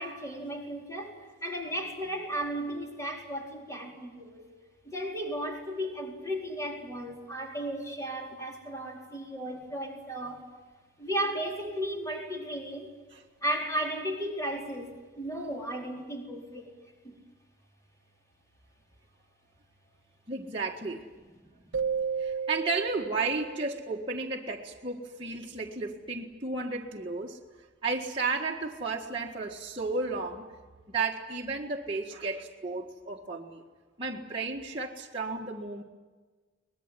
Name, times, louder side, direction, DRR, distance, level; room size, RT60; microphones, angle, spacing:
voice 1, 0.0-4.4 4.8-10.4 11.0-12.9 13.4-16.7 17.0-17.1 21.6-21.9, right 1 dB, 15° left, 0 dB, 4.5 m, -35 dB
voice 2, 20.3-21.0 22.2-27.4 27.8-30.5 30.9-33.6 34.0-35.8, right 3 dB, 30° right, -4 dB, 1.7 m, -33 dB
sound 1, 21.7-24.4, right 6 dB, 75° right, 0.8 m, -34 dB
24.0 x 20.5 x 9.7 m, 1.3 s
head